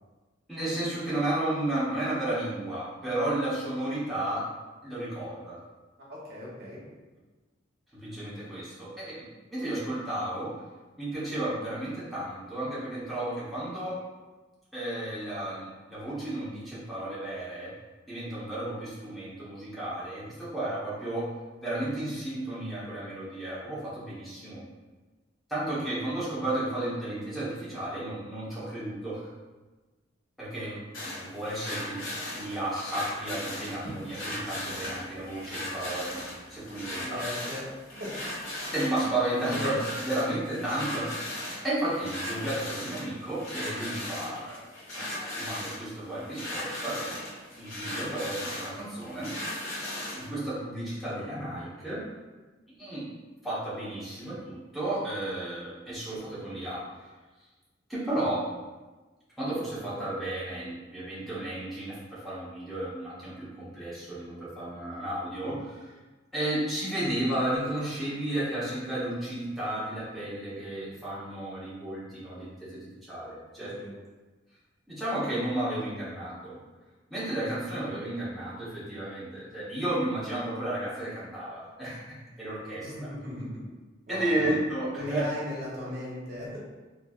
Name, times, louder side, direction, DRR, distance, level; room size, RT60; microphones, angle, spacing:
voice 1, 0.5-4.4 4.8-5.6 7.9-9.3 9.5-10.5 11.0-14.0 14.7-17.7 18.1-21.3 21.6-24.6 25.5-29.3 30.4-32.0 32.3-36.2 36.5-37.3 38.7-41.2 41.6-44.6 44.9-47.2 47.6-49.3 50.1-52.0 52.8-53.0 53.4-57.1 57.9-58.4 59.4-65.9 66.3-73.7 74.9-76.6 77.1-82.9 84.1-85.3, right 1 dB, ahead, -10 dB, 0.9 m, -33 dB
voice 2, 6.1-6.8 36.9-38.1 73.6-73.9 82.6-83.7 84.1-84.6 84.9-86.6, left 1 dB, 50° right, -6 dB, 0.8 m, -38 dB
sound 1, 30.9-50.3, left 1 dB, 90° left, 0.9 m, -37 dB
3.0 x 2.6 x 2.3 m, 1.2 s
head